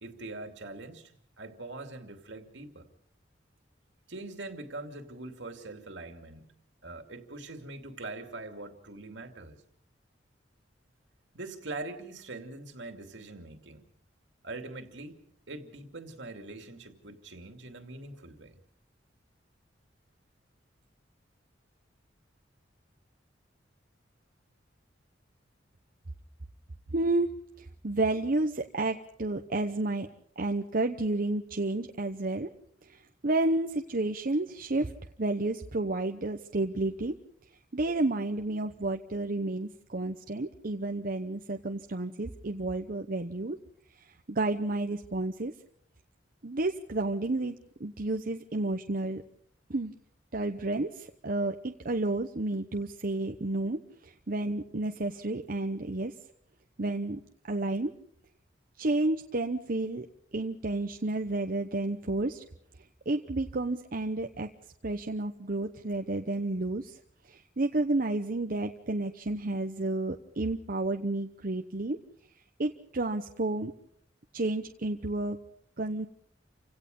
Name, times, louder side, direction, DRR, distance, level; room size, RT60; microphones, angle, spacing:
voice 1, 0.0-2.9 4.1-6.5 6.8-9.6 11.3-13.8 14.4-18.6, right 2 dB, 70° right, 6 dB, 2.6 m, -43 dB
voice 2, 26.9-30.1 30.4-32.5 32.8-34.9 35.2-37.1 37.7-43.6 44.3-45.5 46.4-49.2 49.7-49.9 50.3-53.8 54.0-56.1 56.8-57.2 57.5-57.9 58.8-60.1 60.3-62.4 63.1-64.5 64.8-67.0 67.2-72.0 72.6-73.7 74.3-75.4 75.8-76.1, right 2 dB, 50° right, 5 dB, 0.9 m, -31 dB
29.0 x 17.0 x 5.4 m, 0.65 s
head